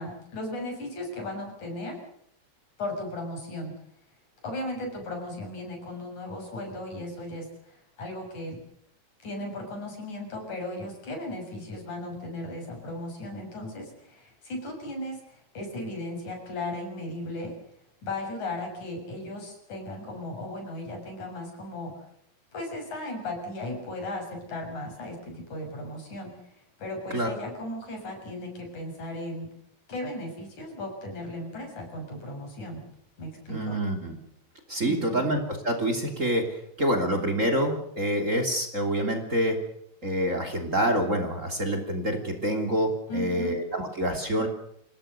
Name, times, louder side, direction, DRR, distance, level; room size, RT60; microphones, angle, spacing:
voice 1, 0.0-2.0 2.8-3.7 4.4-8.6 9.2-17.5 18.0-22.1 22.5-26.4 26.8-29.5 29.9-32.8 33.2-33.8 34.8-35.3 43.1-43.6, left 1 dB, 80° left, 3 dB, 8.2 m, -36 dB
voice 2, 33.5-34.2 34.7-39.6 40.0-44.5, equal, 25° right, 5 dB, 3.4 m, -27 dB
28.0 x 18.5 x 6.8 m, 0.70 s
omnidirectional pair, 3.4 m